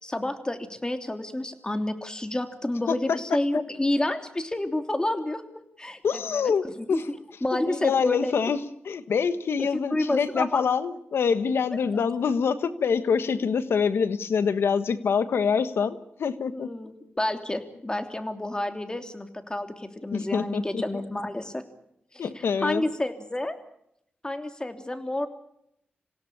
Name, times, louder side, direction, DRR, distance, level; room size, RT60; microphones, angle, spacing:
voice 1, 0.0-7.2 7.4-8.3 9.6-10.6 16.5-21.6 22.1-23.5 24.2-25.3, left 1 dB, 20° left, 7 dB, 3.1 m, -30 dB
voice 2, 2.9-3.2 6.0-7.1 7.5-8.6 8.8-16.7 20.1-21.0 22.2-22.8, left 6 dB, 90° left, 12 dB, 1.4 m, -25 dB
27.5 x 17.0 x 8.7 m, 0.76 s
cardioid pair, 65°, 4 cm